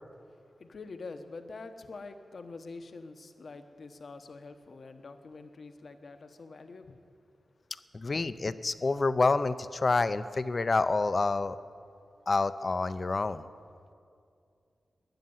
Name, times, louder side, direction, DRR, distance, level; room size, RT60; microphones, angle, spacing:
voice 1, 0.6-7.0, left 3 dB, 55° left, 8 dB, 1.0 m, -45 dB
voice 2, 7.9-11.6 12.3-13.5, left 3 dB, 35° left, 14 dB, 0.5 m, -28 dB
13.0 x 10.0 x 9.5 m, 2.4 s
wide cardioid pair, 130°, 0 cm